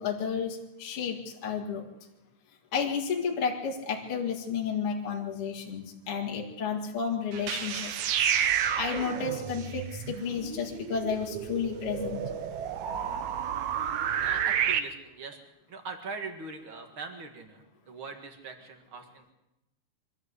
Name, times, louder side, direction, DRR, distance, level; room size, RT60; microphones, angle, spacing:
voice 1, 0.0-1.9 2.7-12.2, left 6 dB, 45° left, 0 dB, 2.2 m, -32 dB
sound 1, 7.3-14.8, right 8 dB, 75° right, 1.7 m, -30 dB
voice 2, 13.7-19.3, right 4 dB, 45° right, 6 dB, 1.8 m, -42 dB
24.0 x 13.5 x 8.1 m, 0.93 s
omnidirectional pair, 4.9 m